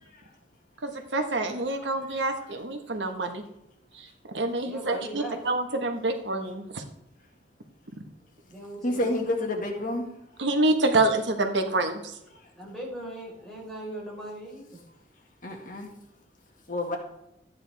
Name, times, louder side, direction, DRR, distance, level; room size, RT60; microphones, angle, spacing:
voice 1, 0.8-3.4 4.3-6.8 10.4-12.0, right 2 dB, 90° right, 5 dB, 1.4 m, -27 dB
voice 2, 4.6-5.4 8.5-9.1 12.5-14.8, right 1 dB, 5° left, -5 dB, 4.6 m, -39 dB
voice 3, 8.8-10.1 15.4-15.9 16.7-17.0, left 1 dB, 50° left, 2 dB, 1.9 m, -29 dB
13.5 x 9.6 x 3.5 m, 0.84 s
head